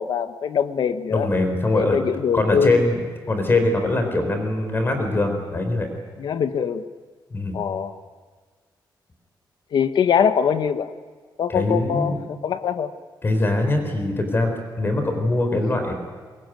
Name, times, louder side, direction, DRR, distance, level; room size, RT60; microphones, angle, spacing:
voice 1, 0.0-1.3 1.7-2.8 6.2-6.9 7.5-8.0 9.7-10.9 11.4-12.9, left 7 dB, 70° left, 10 dB, 1.3 m, -23 dB
voice 2, 1.1-2.0 2.3-5.9 7.3-7.6 11.5-12.2 13.2-15.9, left 2 dB, 30° left, 5 dB, 4.2 m, -22 dB
24.5 x 22.5 x 9.3 m, 1.5 s
wide cardioid pair, 155°, 8 cm